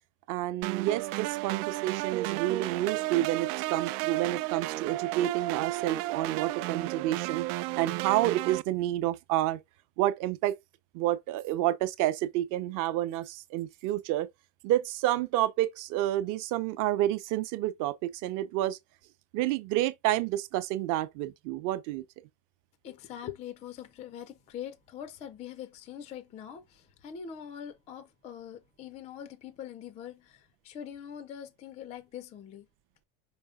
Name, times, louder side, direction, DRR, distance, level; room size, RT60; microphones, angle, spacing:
voice 1, 0.3-7.5 7.8-9.6 10.0-10.5 10.9-14.3 14.6-18.8 19.3-22.0, right 14 dB, 45° right, 0.8 m, -29 dB
sound 1, 0.6-8.6, right 19 dB, 80° right, 0.6 m, -33 dB
voice 2, 22.8-32.7, left 9 dB, 15° left, 0.3 m, -43 dB
5.5 x 5.1 x 3.7 m
cardioid pair, 175°, 44 cm